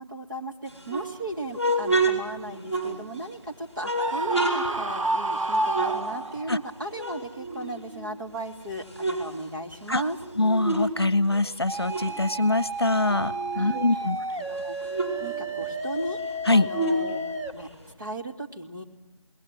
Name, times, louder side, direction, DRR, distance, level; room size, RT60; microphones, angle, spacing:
voice 1, 0.0-10.2 13.5-13.8 14.3-17.2 17.5-17.7 18.0-18.8, right 1 dB, 40° right, 0 dB, 3.2 m, -36 dB
sound 1, 0.7-3.3 3.8-6.7 6.9-8.3 8.7-10.9 11.2-13.8 14.2-14.3 14.5-17.9, right 2 dB, 25° right, 6.5 m, -30 dB
Screaming, 4.0-6.7, right 2 dB, 85° right, 1.4 m, -28 dB
voice 2, 10.4-14.2 16.4-16.7, left 2 dB, 50° left, 18 dB, 1.0 m, -23 dB
sound 2, 11.7-17.5, right 2 dB, 60° right, 3.6 m, -33 dB
29.5 x 20.5 x 9.4 m, 1.1 s
figure-of-eight pair, 180°, 16 cm